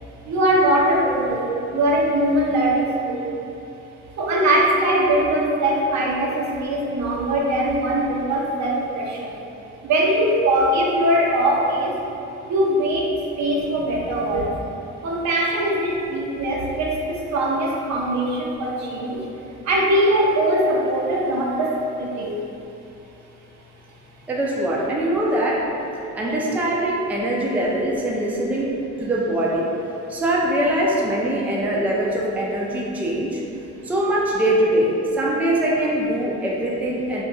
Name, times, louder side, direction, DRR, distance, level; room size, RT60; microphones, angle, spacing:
voice 1, 0.2-3.3 4.2-9.4 9.8-12.0 12.4-14.6 15.0-19.3 19.6-22.4, right 1 dB, 65° right, -3 dB, 0.6 m, -21 dB
voice 2, 24.3-25.7 26.2-29.7 30.1-33.4 33.8-37.2, right 1 dB, 5° right, -4 dB, 0.4 m, -22 dB
2.5 x 2.2 x 3.7 m, 2.8 s
cardioid pair, 90°, 30 cm